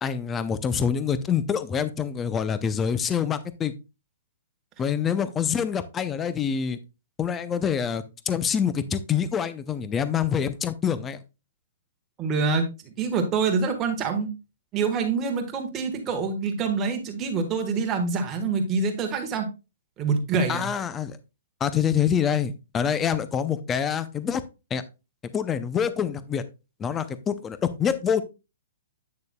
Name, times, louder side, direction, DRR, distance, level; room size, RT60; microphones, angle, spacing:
voice 1, 0.0-3.7 4.8-6.8 7.2-11.2 20.5-21.2 21.6-24.4 24.7-24.8 25.3-26.5 26.8-28.2, left 7 dB, 10° left, 14 dB, 0.4 m, -26 dB
voice 2, 12.2-14.3 14.7-19.5 20.0-20.6, right 4 dB, 15° right, 5 dB, 1.2 m, -26 dB
8.5 x 6.8 x 2.2 m, 0.28 s
hypercardioid pair, 170°, 0 cm